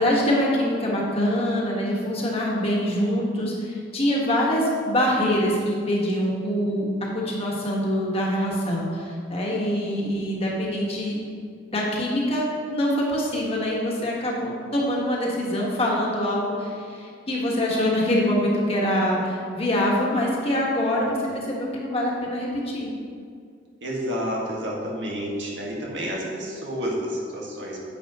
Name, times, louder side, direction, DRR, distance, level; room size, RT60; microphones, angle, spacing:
voice 1, 0.0-6.9 7.1-11.2 11.7-22.9, equal, 35° left, -3 dB, 1.6 m, -24 dB
voice 2, 20.9-21.4 23.8-27.8, equal, 85° right, -3 dB, 1.8 m, -30 dB
9.7 x 7.5 x 3.1 m, 2.2 s
head